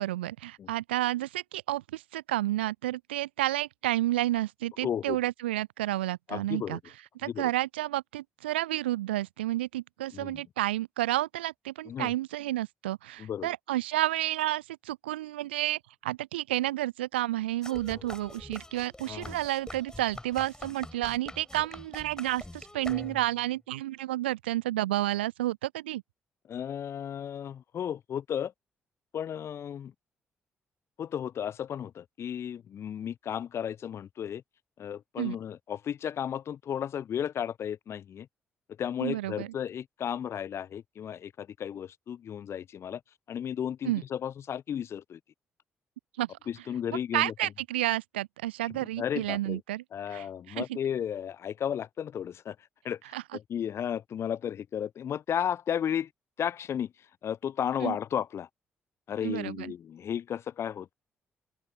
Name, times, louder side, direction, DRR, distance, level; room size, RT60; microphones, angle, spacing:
voice 1, 0.0-6.8 7.2-26.0 35.2-35.4 39.0-39.5 43.8-44.0 46.2-46.4 47.1-49.8 50.1-50.8 53.1-53.2 57.8-58.0 59.2-59.7, right 15 dB, 75° right, 0.4 m, -31 dB
voice 2, 4.8-5.2 6.3-6.8 7.2-7.5 10.1-10.4 11.9-12.1 13.2-13.5 17.9-18.0 19.1-19.4 26.5-28.5 29.1-29.9 31.0-34.4 34.8-38.3 38.8-43.0 43.3-45.2 46.5-47.3 48.7-49.6 49.9-52.6 52.8-53.0 53.3-56.1 56.4-56.9 57.2-58.5 59.1-60.9, left 9 dB, 50° left, 0.8 m, -34 dB
sound 1, 17.6-23.4, left 1 dB, 10° left, 5.5 m, -45 dB
open air
figure-of-eight pair, 40°, 6 cm